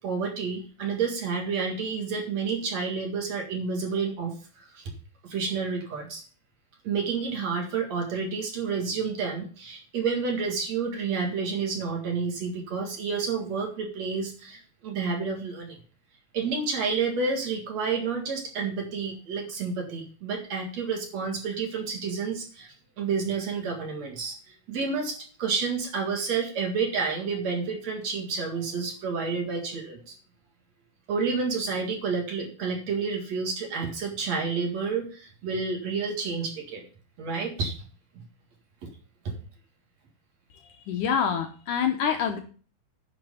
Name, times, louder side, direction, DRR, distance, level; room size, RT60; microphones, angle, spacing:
voice 1, 0.0-4.9 5.2-6.2 6.8-15.8 16.3-24.4 24.7-30.1 31.1-36.8 37.2-37.7 38.1-38.2 39.2-39.3, right 5 dB, 50° right, 2 dB, 2.7 m, -30 dB
voice 2, 40.9-42.4, left 7 dB, 70° left, 5 dB, 2.1 m, -26 dB
10.5 x 6.0 x 5.6 m, 0.40 s
omnidirectional pair, 4.3 m